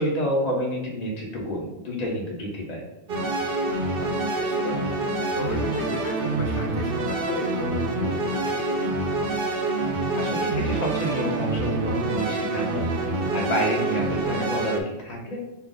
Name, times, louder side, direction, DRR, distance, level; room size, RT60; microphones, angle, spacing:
voice 1, 0.0-2.8 10.2-12.8 13.3-15.4, equal, 40° left, -2 dB, 1.1 m, -28 dB
sound 1, 3.1-14.8, right 2 dB, 60° right, 0.8 m, -26 dB
voice 2, 3.9-4.8 5.3-9.2, left 4 dB, 85° left, 2 dB, 0.9 m, -36 dB
5.7 x 2.1 x 3.8 m, 0.98 s
omnidirectional pair, 1.1 m